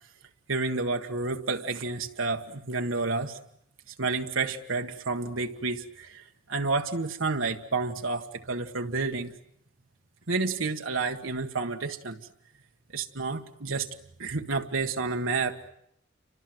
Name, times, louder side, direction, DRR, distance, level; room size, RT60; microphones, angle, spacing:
voice 1, 0.5-3.4 3.9-6.2 6.5-9.3 10.3-12.2 12.9-13.9 14.2-15.7, right 3 dB, 75° right, 4 dB, 1.6 m, -30 dB
30.0 x 25.0 x 7.9 m, 0.73 s
head